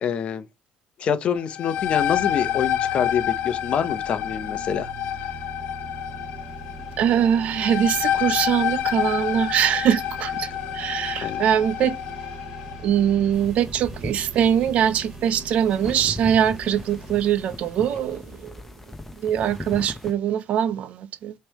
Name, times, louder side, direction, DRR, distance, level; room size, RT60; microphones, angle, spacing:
voice 1, 0.0-0.4 1.0-4.9 11.1-11.4, left 7 dB, 45° left, 0.9 m, -26 dB
sound 1, 1.4-12.8, left 11 dB, 75° left, 0.7 m, -28 dB
sound 2, 1.7-18.1, right 3 dB, 20° right, 2.1 m, -41 dB
voice 2, 7.0-10.5 10.7-12.0 12.8-18.5 19.2-21.3, right 9 dB, 60° right, 0.6 m, -22 dB
sound 3, 13.3-20.1, left 2 dB, 10° left, 0.8 m, -39 dB
5.4 x 3.3 x 2.9 m
cardioid pair, 120°, 3 cm